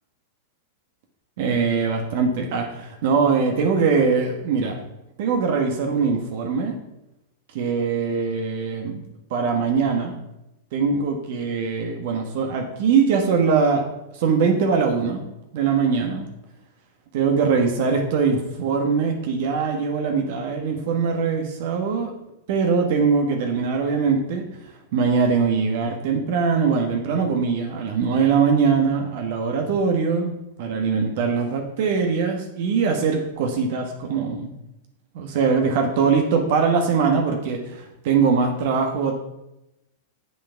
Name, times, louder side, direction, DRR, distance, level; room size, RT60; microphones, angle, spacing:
voice 1, 1.4-4.7 5.2-6.8 7.5-9.0 9.3-10.1 10.7-13.8 14.2-15.2 15.5-16.3 17.1-22.1 22.5-24.4 24.9-30.3 30.6-34.5 35.1-39.1, right 5 dB, 60° right, 3 dB, 1.5 m, -22 dB
7.2 x 7.1 x 5.8 m, 0.91 s
hypercardioid pair, 120°, 0 cm